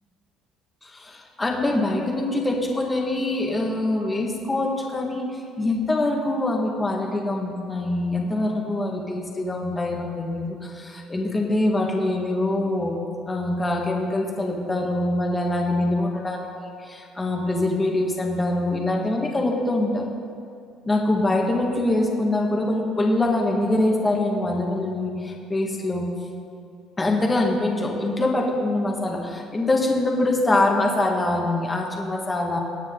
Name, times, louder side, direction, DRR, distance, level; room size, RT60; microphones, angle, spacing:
voice 1, 0.8-13.0 13.3-20.0 20.9-26.1 27.0-32.6, left 2 dB, 15° left, 0 dB, 1.9 m, -24 dB
23.5 x 9.1 x 4.0 m, 2.4 s
cardioid pair, 135°, 0 cm